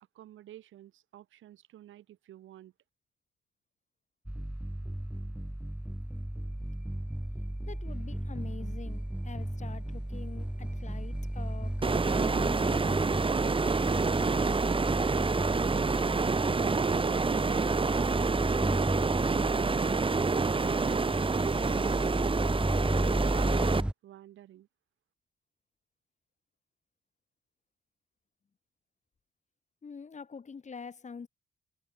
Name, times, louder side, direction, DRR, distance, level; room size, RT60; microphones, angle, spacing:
voice 1, 0.1-2.7 22.9-24.7, right 13 dB, 80° right, 7.8 m, -50 dB
sound 1, 4.3-23.9, right 1 dB, 5° right, 1.6 m, -34 dB
voice 2, 7.7-13.0 29.8-31.3, left 5 dB, 35° left, 5.3 m, -45 dB
sound 2, 11.8-23.8, right 4 dB, 25° right, 2.0 m, -28 dB
cardioid pair, 90°, 20 cm